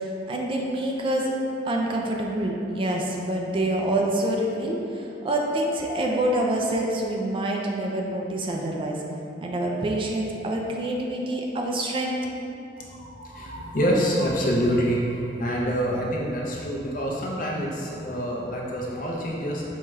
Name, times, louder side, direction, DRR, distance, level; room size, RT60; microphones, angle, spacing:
voice 1, 0.3-1.3 1.7-9.0 9.4-12.5 13.4-13.6, right 1 dB, 30° right, 0 dB, 0.3 m, -26 dB
voice 2, 12.8-19.6, equal, 50° left, -3 dB, 0.6 m, -26 dB
4.6 x 2.3 x 3.0 m, 2.8 s
head